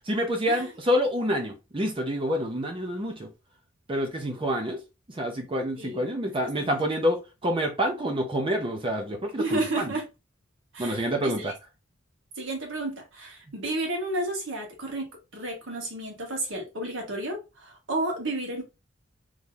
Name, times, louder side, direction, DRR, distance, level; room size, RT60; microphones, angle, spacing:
voice 1, 0.1-3.3 3.9-4.8 5.1-9.9 10.8-11.5, equal, 30° right, 0.7 m, -27 dB
voice 2, 5.8-6.1 6.4-6.7 9.4-10.0 10.7-11.5 12.4-18.6, right 2 dB, 80° right, 1.5 m, -32 dB
3.2 x 2.7 x 3.7 m
head